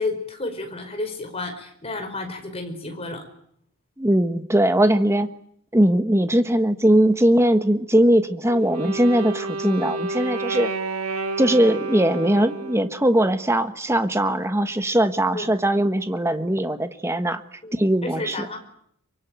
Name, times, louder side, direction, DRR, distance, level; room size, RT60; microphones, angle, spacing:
voice 1, 0.0-3.2 15.3-15.5 17.6-17.7 18.0-18.6, left 2 dB, 25° left, 5 dB, 5.1 m, -31 dB
voice 2, 4.0-5.3 5.7-10.7 11.4-17.4 17.7-18.5, right 1 dB, 10° right, 9 dB, 1.3 m, -20 dB
Wind instrument woodwind instrument, 8.5-13.0, right 3 dB, 85° right, 2.5 m, -30 dB
24.0 x 24.0 x 9.3 m, 0.69 s
head